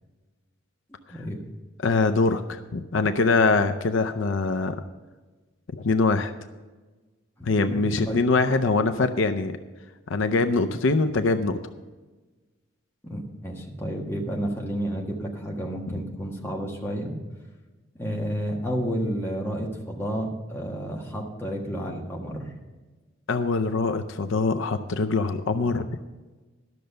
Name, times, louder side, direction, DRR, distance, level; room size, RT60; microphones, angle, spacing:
voice 1, 1.1-1.4 7.4-8.2 13.0-17.2 18.0-22.5, equal, 10° left, -1 dB, 1.5 m, -31 dB
voice 2, 1.8-4.7 5.7-6.3 7.4-9.6 10.1-11.6 23.3-26.0, left 3 dB, 75° left, 9 dB, 0.6 m, -23 dB
12.5 x 6.5 x 6.8 m, 1.3 s
head